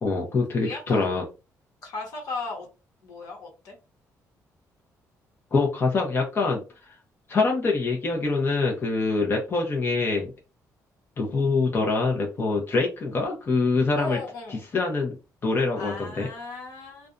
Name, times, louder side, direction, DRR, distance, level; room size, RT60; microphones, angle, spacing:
voice 1, 0.0-1.2 5.5-6.9 7.3-10.3 11.2-14.2 14.7-15.1 15.4-16.3, left 3 dB, 35° left, 0 dB, 0.7 m, -24 dB
voice 2, 0.6-1.1 1.8-2.7 3.0-3.8 14.0-14.6 15.7-17.1, left 3 dB, 70° left, 1 dB, 1.0 m, -36 dB
2.5 x 2.2 x 2.4 m, 0.29 s
cardioid pair, 105°, 6 cm